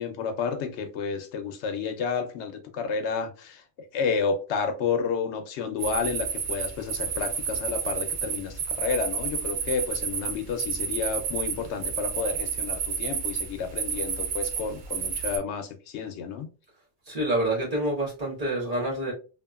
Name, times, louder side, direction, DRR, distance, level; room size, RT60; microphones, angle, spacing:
voice 1, 0.0-3.6 3.9-16.5, left 5 dB, 80° left, 0.8 m, -30 dB
sound 1, 5.8-15.4, right 7 dB, 60° right, 0.5 m, -31 dB
voice 2, 17.1-19.1, right 1 dB, 35° right, 1.1 m, -27 dB
2.8 x 2.4 x 2.3 m
omnidirectional pair, 1.2 m